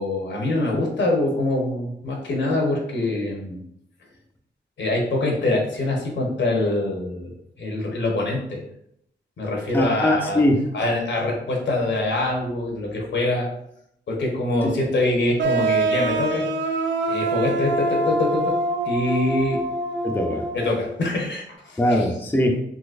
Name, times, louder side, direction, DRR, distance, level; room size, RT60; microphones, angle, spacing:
voice 1, 0.0-3.6 4.8-7.3 7.6-8.6 9.4-10.4 10.7-13.5 14.1-16.4 17.1-18.6 18.8-19.6 20.5-22.0, left 2 dB, 75° left, 0 dB, 0.9 m, -24 dB
voice 2, 9.7-10.7 14.6-14.8 20.0-20.5 21.8-22.6, left 1 dB, 10° left, 2 dB, 0.4 m, -21 dB
sound 1, 15.4-20.9, right 2 dB, 80° right, 0.4 m, -25 dB
3.9 x 2.7 x 2.4 m, 0.75 s
wide cardioid pair, 100°, 19 cm